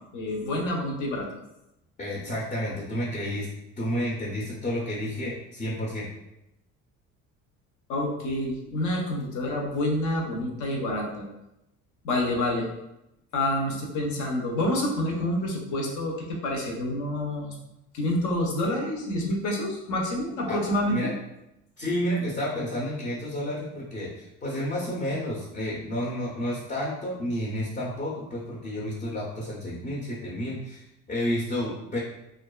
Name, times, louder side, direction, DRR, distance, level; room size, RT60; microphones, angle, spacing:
voice 1, 0.1-1.3 7.9-11.3 12.0-12.7 13.3-17.5 17.9-21.1, left 1 dB, 70° left, 0 dB, 0.7 m, -28 dB
voice 2, 2.0-3.5 3.8-6.1 20.5-20.6 20.9-21.1 21.8-32.0, equal, 25° left, -5 dB, 0.6 m, -30 dB
2.4 x 2.3 x 2.3 m, 0.88 s
cardioid pair, 100°, 32 cm